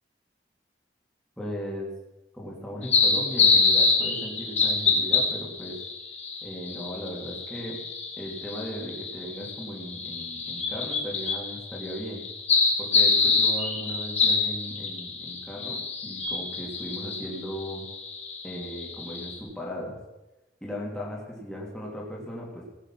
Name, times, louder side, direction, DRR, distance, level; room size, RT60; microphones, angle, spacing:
voice 1, 1.4-1.9 2.3-5.8 6.4-7.8 8.2-12.2 12.8-17.9 18.4-20.0 20.6-22.6, equal, 5° left, -4 dB, 3.1 m, -37 dB
sound 1, 2.8-19.4, left 4 dB, 40° left, 2.6 m, -26 dB
17.5 x 8.8 x 6.0 m, 0.98 s
head